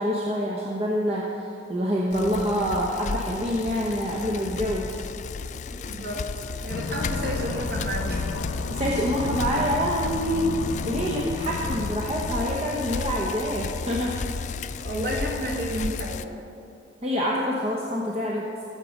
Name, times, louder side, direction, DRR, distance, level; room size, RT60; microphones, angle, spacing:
voice 1, 0.0-5.0 8.7-14.1 17.0-18.5, equal, 30° right, -3 dB, 1.0 m, -26 dB
Bicycle, 2.1-16.2, left 5 dB, 40° left, 0.3 m, -34 dB
voice 2, 5.7-8.3 14.8-16.4, right 1 dB, 50° right, -1 dB, 2.1 m, -31 dB
sound 1, 6.7-13.2, left 3 dB, 85° left, 0.6 m, -33 dB
15.0 x 7.1 x 5.2 m, 2.6 s
head